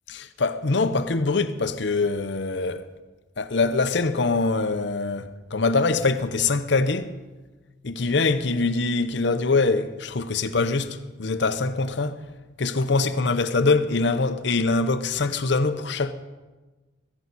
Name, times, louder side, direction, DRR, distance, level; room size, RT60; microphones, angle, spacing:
voice 1, 0.1-2.9 3.4-7.1 7.8-12.2 12.6-16.1, left 3 dB, 60° left, 0.7 m, -23 dB
15.5 x 15.0 x 4.1 m
head